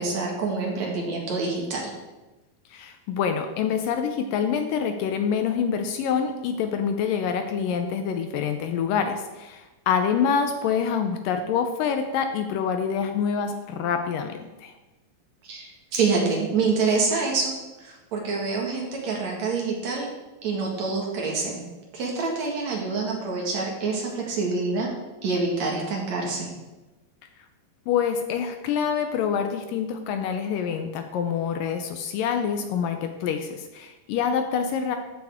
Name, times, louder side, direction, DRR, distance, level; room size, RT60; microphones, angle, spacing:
voice 1, 0.0-1.9 15.4-17.5 17.8-20.1 20.4-24.9 25.2-26.5, right 4 dB, 55° right, -1 dB, 2.6 m, -26 dB
voice 2, 2.7-14.7 27.9-35.0, left 7 dB, 80° left, 6 dB, 2.1 m, -26 dB
13.5 x 7.9 x 3.6 m, 1.1 s
omnidirectional pair, 4.5 m